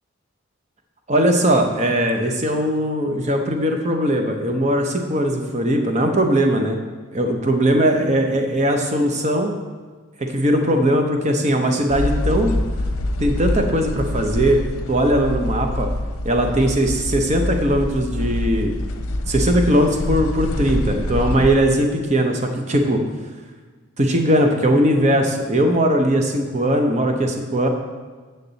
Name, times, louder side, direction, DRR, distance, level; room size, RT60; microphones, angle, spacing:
voice 1, 1.1-6.8 7.1-9.5 10.2-12.5 13.2-14.6 14.9-15.9 16.2-18.7 19.3-23.0 24.0-27.7, right 1 dB, 30° right, 4 dB, 0.7 m, -19 dB
sound 1, 11.9-21.6, left 1 dB, 90° left, 0.7 m, -25 dB
8.5 x 6.6 x 4.0 m, 1.4 s
head